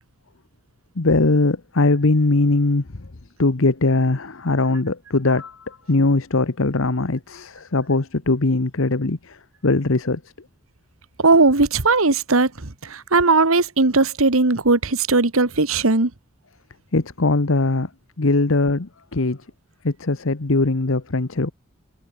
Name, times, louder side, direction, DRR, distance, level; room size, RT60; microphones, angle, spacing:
voice 1, 1.0-3.1 3.4-10.2 16.9-17.9 18.2-19.4 19.8-21.5, left 2 dB, 65° left, 1.1 m, -20 dB
voice 2, 11.2-16.1, right 3 dB, 75° right, 1.6 m, -18 dB
head